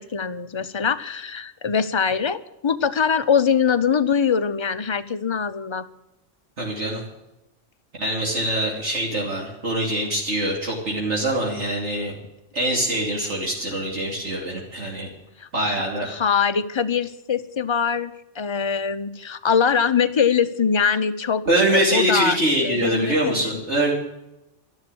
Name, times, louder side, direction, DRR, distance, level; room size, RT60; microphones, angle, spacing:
voice 1, 0.0-5.9 15.4-21.4 21.7-23.6, left 6 dB, 30° left, 11 dB, 0.6 m, -23 dB
voice 2, 6.6-7.0 8.0-12.1 12.5-15.1 15.5-16.1 21.4-23.9, right 1 dB, 65° right, -2 dB, 3.2 m, -24 dB
12.5 x 12.0 x 7.9 m, 0.90 s
omnidirectional pair, 1.3 m